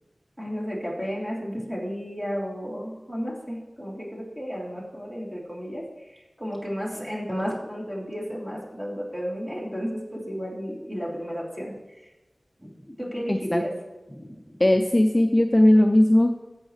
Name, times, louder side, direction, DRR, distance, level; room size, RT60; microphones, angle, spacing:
voice 1, 0.4-12.1 12.6-13.7 14.1-14.6, equal, 10° right, -5 dB, 3.1 m, -33 dB
voice 2, 13.3-13.6 14.6-16.3, left 1 dB, 25° left, 5 dB, 0.5 m, -18 dB
15.0 x 6.4 x 3.2 m, 1.1 s
wide cardioid pair, 70°, 0 cm